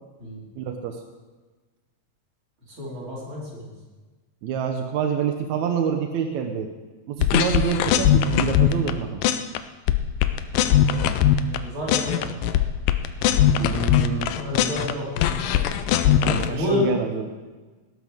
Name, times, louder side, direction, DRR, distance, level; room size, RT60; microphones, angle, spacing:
voice 1, 0.6-1.0 4.4-6.7 7.1-9.2 13.6-14.3 16.2-17.3, right 7 dB, 75° right, 5 dB, 1.7 m, -27 dB
voice 2, 2.8-3.7 11.2-12.6 14.4-16.9, left 1 dB, 35° right, -6 dB, 5.0 m, -30 dB
sound 1, 7.2-8.9 9.2-9.6 9.9-11.6 11.9-14.9 15.2-16.5, left 10 dB, 80° left, 2.2 m, -20 dB
18.0 x 12.5 x 3.6 m, 1.3 s
omnidirectional pair, 4.3 m